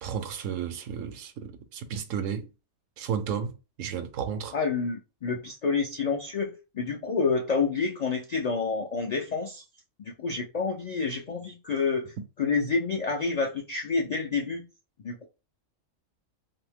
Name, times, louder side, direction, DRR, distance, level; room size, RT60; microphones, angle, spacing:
voice 1, 0.0-2.5 3.0-4.5, right 7 dB, 80° right, 1.0 m, -33 dB
voice 2, 4.5-9.6 10.0-12.1 12.4-14.6 15.0-15.3, left 4 dB, 70° left, 0.3 m, -28 dB
2.7 x 2.5 x 3.4 m
omnidirectional pair, 1.3 m